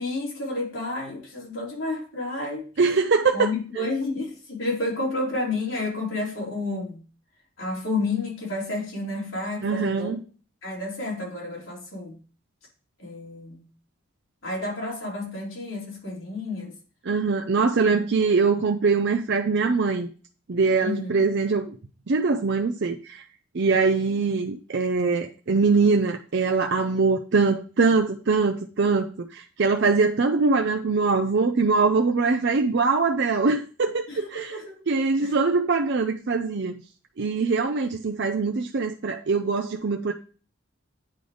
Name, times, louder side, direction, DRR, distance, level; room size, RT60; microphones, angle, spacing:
voice 1, 0.0-2.7 3.3-7.0 7.6-10.2 10.6-12.1 13.0-13.6 14.4-16.7 17.9-18.0 20.8-21.1 34.1-34.8 35.2-35.3, left 2 dB, 75° left, 3.7 m, -30 dB
voice 2, 2.8-3.5 3.8-3.9 9.6-10.2 17.0-20.1 20.5-21.7 22.1-23.2 23.5-34.6 34.9-36.7 37.2-40.1, right 4 dB, 55° right, 0.5 m, -23 dB
9.5 x 3.4 x 3.8 m
head